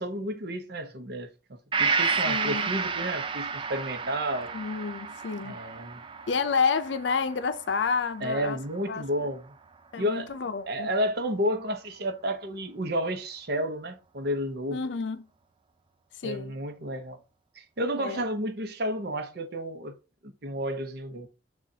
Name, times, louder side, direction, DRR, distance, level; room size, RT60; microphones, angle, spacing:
voice 1, 0.0-4.5 5.4-6.0 8.2-9.5 10.0-10.3 10.7-14.8 16.2-17.2 17.5-20.0 20.2-21.3, equal, 60° right, 0.8 m, -31 dB
Gong, 1.7-9.4 9.7-9.8, right 5 dB, 30° right, 0.4 m, -32 dB
voice 2, 2.2-2.7 4.5-5.6 6.3-8.6 8.9-9.1 9.9-10.9 14.7-15.3 16.1-16.6 18.0-18.2, left 5 dB, 80° left, 0.5 m, -29 dB
6.3 x 2.4 x 2.7 m
head